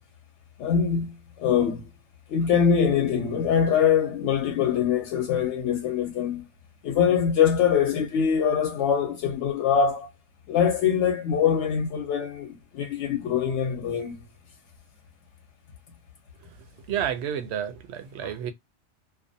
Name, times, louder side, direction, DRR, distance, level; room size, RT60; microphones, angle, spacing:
voice 1, 0.6-1.9 2.3-6.5 6.8-10.1 10.5-14.2, left 7 dB, 90° left, 0.9 m, -23 dB
voice 2, 16.9-18.5, right 9 dB, 70° right, 0.8 m, -30 dB
2.4 x 2.1 x 2.6 m
omnidirectional pair, 1.2 m